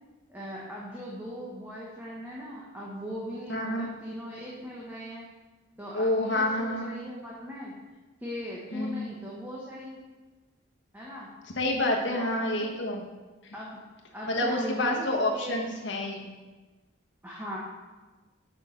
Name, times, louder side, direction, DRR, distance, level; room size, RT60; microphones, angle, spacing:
voice 1, 0.3-5.3 5.8-7.7 8.2-10.0 10.9-11.3 12.0-12.7 13.5-13.8 14.1-15.6 17.2-17.6, equal, 10° right, -5 dB, 1.0 m, -39 dB
voice 2, 3.5-3.9 5.9-6.9 8.7-9.1 11.6-13.0 14.3-16.3, left 1 dB, 60° left, 0 dB, 1.4 m, -28 dB
6.6 x 6.2 x 5.2 m, 1.3 s
head